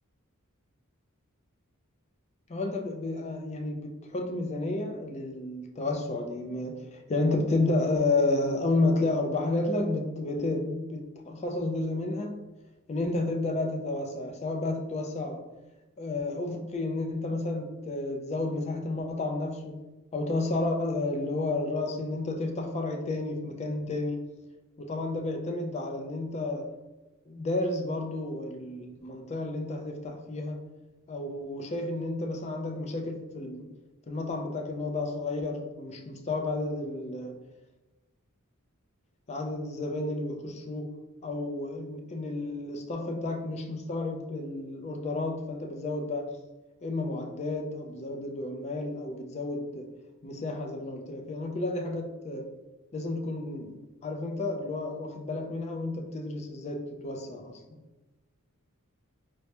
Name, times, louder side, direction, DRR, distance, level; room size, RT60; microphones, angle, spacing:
voice 1, 2.5-12.4 12.9-15.5 16.0-19.9 20.1-24.3 24.8-26.8 27.3-30.6 31.1-33.7 34.1-37.4 39.3-40.9 41.2-46.4 46.8-49.9 50.2-52.5 52.9-57.8, left 2 dB, 30° left, 0.4 m, -31 dB
4.5 x 2.1 x 2.8 m
head